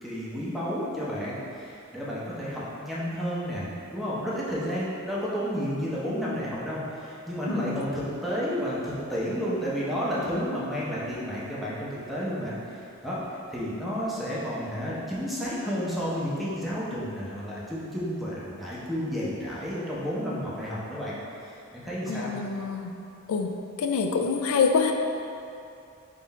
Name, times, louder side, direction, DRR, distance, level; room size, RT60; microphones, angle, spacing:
voice 1, 0.0-22.3, equal, ahead, -8 dB, 0.7 m, -31 dB
voice 2, 7.5-7.8 22.1-22.9 23.3-23.5 23.8-24.9, left 5 dB, 80° left, 5 dB, 0.3 m, -26 dB
3.8 x 2.5 x 4.1 m, 2.6 s
head